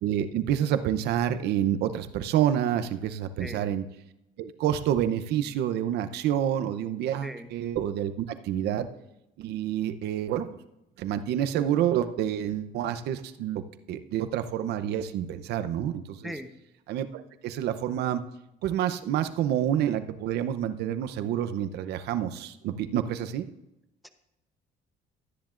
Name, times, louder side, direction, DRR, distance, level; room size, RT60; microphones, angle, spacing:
voice 1, 0.0-3.8 4.4-8.9 9.4-10.5 11.0-13.6 13.9-16.3 16.9-18.2 18.6-23.5, right 10 dB, 75° right, 11 dB, 0.7 m, -28 dB
voice 2, 3.4-3.7 7.2-7.5 16.2-16.5 24.0-24.1, equal, ahead, 8 dB, 0.8 m, -39 dB
13.0 x 10.5 x 2.5 m, 0.90 s
cardioid pair, 110°, 17 cm